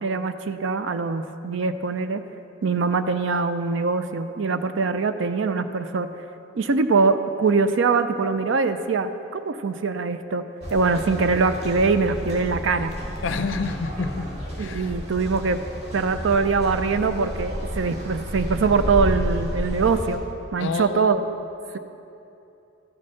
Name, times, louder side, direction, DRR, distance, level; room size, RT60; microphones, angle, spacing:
voice 1, 0.0-2.2 2.6-6.1 6.6-10.4 10.7-12.9 14.6-15.6 15.9-20.2 20.5-21.3, right 4 dB, 65° right, 10 dB, 0.4 m, -23 dB
sound 1, 10.6-20.2, equal, 30° right, 1.7 m, -31 dB
voice 2, 13.2-14.3 14.6-14.9 20.6-21.1 21.6-21.8, left 4 dB, 65° left, 9 dB, 0.5 m, -29 dB
13.0 x 4.4 x 6.2 m, 2.8 s
head